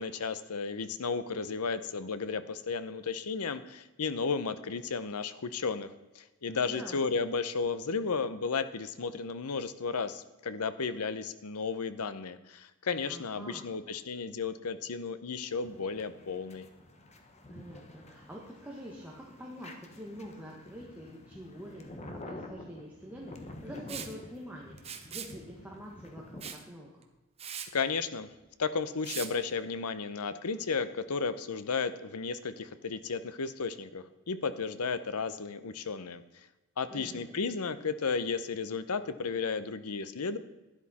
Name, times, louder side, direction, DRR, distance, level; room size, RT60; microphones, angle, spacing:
voice 1, 0.0-16.7 27.7-28.3 28.6-36.2 36.8-40.4, left 5 dB, 85° left, 13 dB, 0.8 m, -33 dB
voice 2, 6.6-7.1 13.1-13.7 17.5-27.0 36.9-37.5, equal, 5° right, -3 dB, 1.4 m, -46 dB
sound 1, 15.5-26.5, left 1 dB, 30° left, 1.1 m, -49 dB
Liquid, 23.9-24.1 24.8-25.3 26.4-26.6 27.0-27.1 27.4-27.7 29.0-29.3, right 8 dB, 25° right, 0.9 m, -40 dB
12.0 x 10.5 x 4.2 m, 1.1 s
head